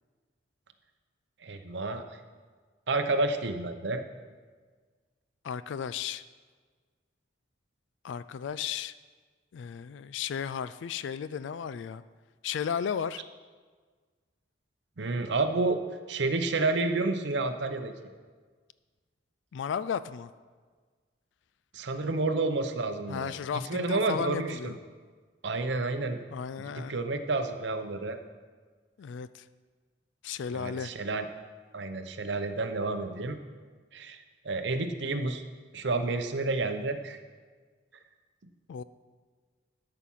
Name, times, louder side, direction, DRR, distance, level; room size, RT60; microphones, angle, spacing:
voice 1, 1.4-2.1 2.9-4.0 15.0-15.8 16.1-17.9 21.7-23.3 23.7-24.7 25.4-26.2 26.8-28.2 30.5-31.3 31.7-33.4 33.9-35.4 35.7-37.2, right 3 dB, 65° right, 7 dB, 0.7 m, -30 dB
voice 2, 5.4-6.2 8.0-8.9 9.5-12.0 12.4-13.2 19.5-20.3 23.1-24.8 26.3-27.0 29.0-29.5 30.2-30.9 38.7-38.8, left 7 dB, 70° left, 15 dB, 0.3 m, -34 dB
13.0 x 5.8 x 5.6 m, 1.5 s
head